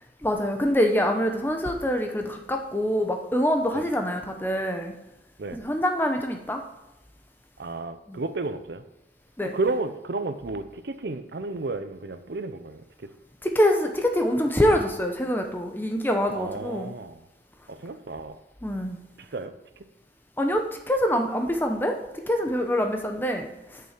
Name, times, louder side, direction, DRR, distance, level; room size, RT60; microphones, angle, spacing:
voice 1, 0.2-5.0 5.5-6.6 8.1-8.2 9.4-9.5 13.4-16.9 18.6-19.0 20.4-22.0 22.3-23.8, equal, 10° left, 4 dB, 0.8 m, -25 dB
voice 2, 7.6-8.8 9.4-13.1 16.3-17.2 17.7-18.3 19.2-19.5, right 3 dB, 65° right, 10 dB, 0.7 m, -32 dB
9.7 x 6.9 x 5.1 m, 0.96 s
head